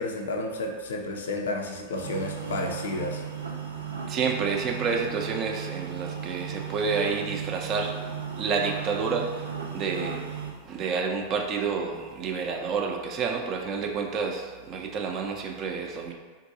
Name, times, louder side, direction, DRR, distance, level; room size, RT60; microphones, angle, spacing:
voice 1, 0.0-3.2, left 2 dB, 75° left, 2 dB, 0.4 m, -31 dB
sound 1, 1.9-10.5, right 7 dB, 85° right, 0.6 m, -35 dB
voice 2, 4.1-7.9 8.4-10.2 10.7-16.1, right 5 dB, 40° right, 2 dB, 0.4 m, -29 dB
3.7 x 2.6 x 2.6 m, 1.5 s
hypercardioid pair, 95°, 0 cm